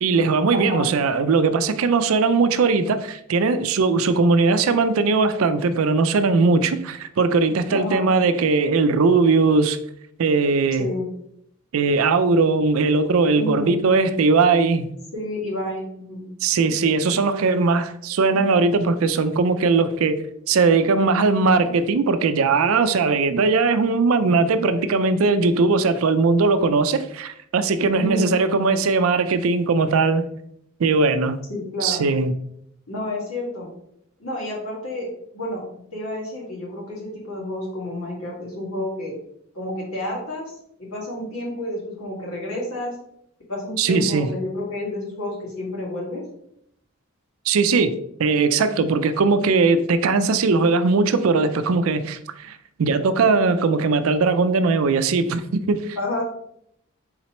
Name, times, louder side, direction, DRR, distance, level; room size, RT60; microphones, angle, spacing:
voice 1, 0.0-9.8 10.2-10.9 11.7-14.9 16.4-30.3 30.8-31.4 31.8-32.3 43.8-44.3 47.5-56.0, right 4 dB, 75° right, 0.4 m, -19 dB
voice 2, 0.5-0.9 7.7-8.1 10.8-11.1 13.4-13.7 15.1-16.3 27.9-28.4 31.5-32.0 32.9-33.7 34.2-35.1 35.3-39.2 39.5-40.5 40.8-42.9 43.5-46.2 56.0-56.2, left 1 dB, 80° left, 1.9 m, -30 dB
4.3 x 4.0 x 2.9 m
head